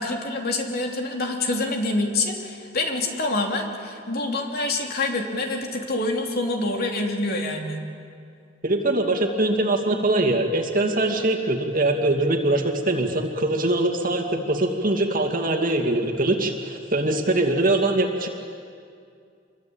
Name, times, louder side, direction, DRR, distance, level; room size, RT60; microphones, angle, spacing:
voice 1, 0.0-7.8, left 2 dB, 55° left, 2 dB, 3.4 m, -26 dB
voice 2, 8.6-18.3, right 2 dB, 45° right, 3 dB, 2.4 m, -22 dB
27.0 x 23.0 x 8.8 m, 2.3 s
head